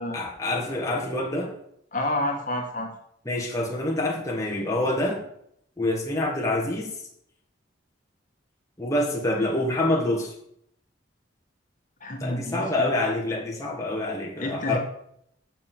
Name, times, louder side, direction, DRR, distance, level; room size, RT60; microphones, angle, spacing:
voice 1, 0.1-1.5 3.3-5.2 5.8-6.9 8.8-10.3 12.2-14.8, left 1 dB, 15° left, -2 dB, 1.7 m, -26 dB
voice 2, 1.9-2.9 12.0-12.9 14.4-14.8, left 1 dB, 45° left, 2 dB, 1.9 m, -29 dB
7.5 x 7.0 x 7.6 m, 0.71 s
head